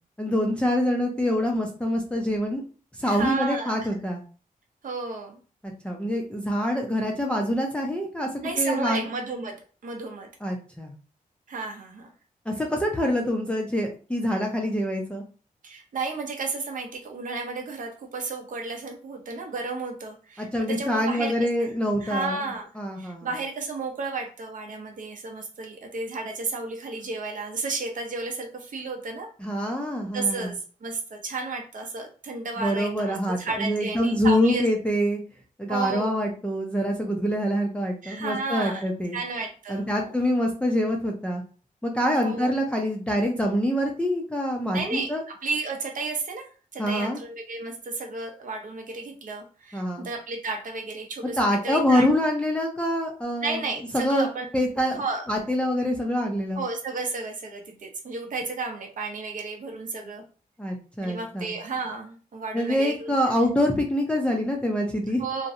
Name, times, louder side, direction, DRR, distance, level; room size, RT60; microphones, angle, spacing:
voice 1, 0.2-2.6 2.9-4.2 5.8-8.3 8.6-9.1 10.4-10.9 12.5-15.2 20.4-22.4 22.8-23.3 29.4-30.5 32.6-35.2 35.6-39.2 39.7-41.4 41.8-45.2 46.8-47.2 49.7-50.1 51.4-53.6 53.9-54.3 54.5-55.0 55.3-56.6 60.6-61.5 62.5-65.2, equal, 5° left, 0 dB, 0.4 m, -25 dB
voice 2, 3.0-3.8 4.8-5.4 8.4-10.3 11.5-12.1 15.6-21.7 22.0-22.7 23.0-29.3 30.1-34.6 35.7-36.2 38.0-38.8 39.1-40.1 42.2-42.5 44.7-51.4 51.6-52.1 53.4-54.5 54.9-55.2 56.6-60.2 61.0-63.1 65.2-65.5, right 3 dB, 60° right, 3 dB, 0.6 m, -32 dB
2.5 x 2.0 x 2.6 m, 0.38 s
wide cardioid pair, 105°, 15 cm